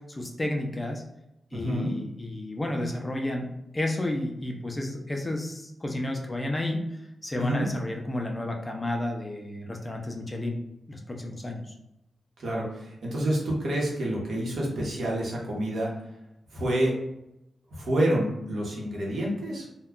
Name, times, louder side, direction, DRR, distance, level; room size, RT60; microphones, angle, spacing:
voice 1, 0.1-1.0 1.5-6.8 7.2-10.6 10.9-11.7, left 1 dB, 15° left, 1 dB, 0.4 m, -31 dB
voice 2, 1.5-1.9 7.4-7.7 12.4-15.9 16.5-17.0 17.7-19.7, right 1 dB, 70° right, -3 dB, 0.9 m, -28 dB
2.2 x 2.2 x 3.6 m, 0.87 s
wide cardioid pair, 145°, 0 cm